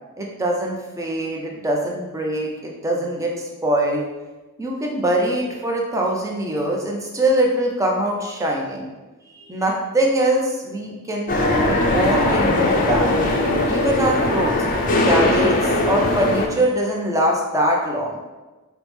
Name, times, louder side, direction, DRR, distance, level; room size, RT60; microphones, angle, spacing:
voice 1, 0.2-4.0 4.6-8.9 9.3-13.1 13.7-14.6 15.0-15.6 15.9-18.2, right 1 dB, 15° right, -1 dB, 0.5 m, -23 dB
sound 1, 11.3-16.5, left 2 dB, 40° left, 0.4 m, -19 dB
4.7 x 2.0 x 3.3 m, 1.2 s
head